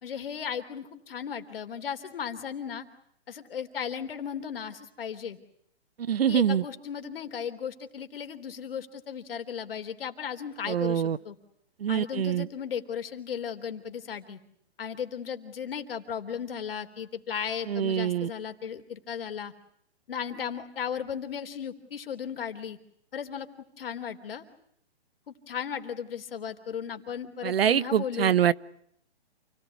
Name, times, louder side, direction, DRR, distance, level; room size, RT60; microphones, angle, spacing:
voice 1, 0.0-2.9 3.3-5.4 6.3-11.4 11.9-14.4 14.8-19.5 20.1-22.8 23.1-23.5 23.8-24.4 25.3-28.4, left 7 dB, 60° left, 8 dB, 3.5 m, -36 dB
voice 2, 6.1-6.6 10.7-11.2 11.8-12.5 17.7-18.3 27.4-28.5, right 9 dB, 60° right, 20 dB, 1.1 m, -24 dB
29.0 x 18.5 x 9.6 m, 0.71 s
hypercardioid pair, 160°, 33 cm